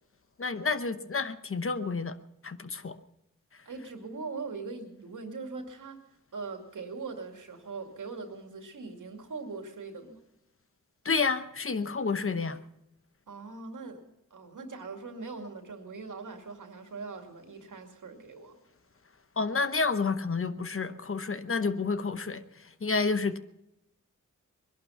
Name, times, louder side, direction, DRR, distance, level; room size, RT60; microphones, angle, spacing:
voice 1, 0.4-2.2 2.4-3.0 11.0-12.6 19.4-22.4 22.8-23.4, left 4 dB, 45° left, 11 dB, 0.9 m, -29 dB
voice 2, 3.7-6.1 6.3-10.2 13.3-14.0 14.3-18.6, right 4 dB, 75° right, 5 dB, 2.4 m, -41 dB
21.0 x 11.5 x 5.7 m, 0.89 s
cardioid pair, 65°, 31 cm